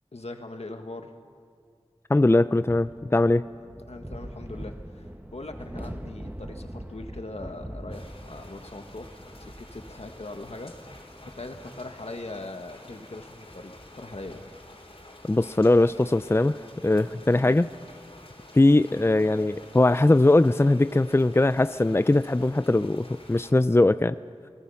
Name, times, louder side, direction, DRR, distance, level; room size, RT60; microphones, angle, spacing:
voice 1, 0.1-1.1 3.9-14.4 17.3-17.6, left 2 dB, 80° left, 5 dB, 1.8 m, -41 dB
voice 2, 2.1-3.4 15.3-17.7 18.5-24.2, left 2 dB, 25° left, 13 dB, 0.5 m, -21 dB
sound 1, 2.6-18.4, equal, 15° right, 1.4 m, -44 dB
sound 2, 7.9-23.5, left 1 dB, 65° left, 3.5 m, -50 dB
28.0 x 20.0 x 5.8 m, 2.2 s
wide cardioid pair, 40°, 11 cm